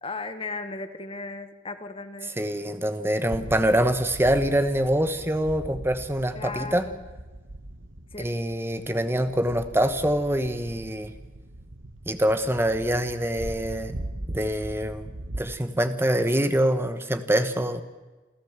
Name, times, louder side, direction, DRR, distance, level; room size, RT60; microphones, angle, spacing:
voice 1, 0.0-2.4 6.3-7.1 8.1-8.4, left 3 dB, 30° left, 9 dB, 1.3 m, -36 dB
voice 2, 2.4-6.8 8.2-11.1 12.1-14.0 14.3-15.1 15.4-17.8, right 1 dB, 10° right, 9 dB, 1.2 m, -25 dB
sound 1, 3.2-15.4, right 1 dB, 75° right, 1.4 m, -40 dB
28.0 x 13.0 x 7.4 m, 1.2 s
head